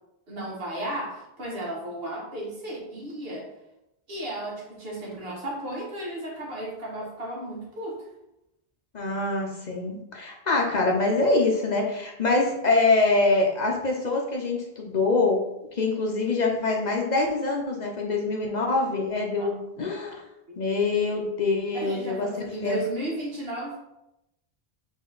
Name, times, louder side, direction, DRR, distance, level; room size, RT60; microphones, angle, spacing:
voice 1, 0.3-3.5 4.1-8.0 19.4-19.5 21.7-23.8, right 1 dB, 70° right, -3 dB, 1.5 m, -34 dB
voice 2, 8.9-15.4 15.7-20.2 20.6-22.3 22.6-22.8, left 3 dB, 50° left, 0 dB, 0.7 m, -24 dB
3.8 x 3.0 x 3.8 m, 0.87 s
omnidirectional pair, 1.0 m